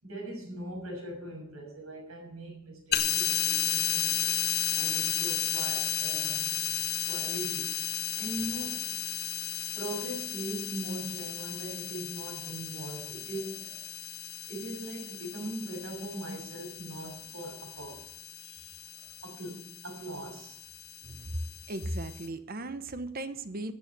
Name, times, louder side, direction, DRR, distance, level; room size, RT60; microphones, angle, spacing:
voice 1, 0.0-4.3 4.7-6.6 7.1-7.7 8.1-9.0 9.7-13.9 14.5-18.0 18.4-18.7 19.0-20.6, right 1 dB, 85° right, 1 dB, 6.9 m, -40 dB
sound 1, 2.9-22.3, left 11 dB, 50° left, 1.6 m, -34 dB
voice 2, 21.0-21.4 21.7-23.7, right 1 dB, 45° right, 11 dB, 1.0 m, -36 dB
13.0 x 9.3 x 6.7 m, 0.72 s
head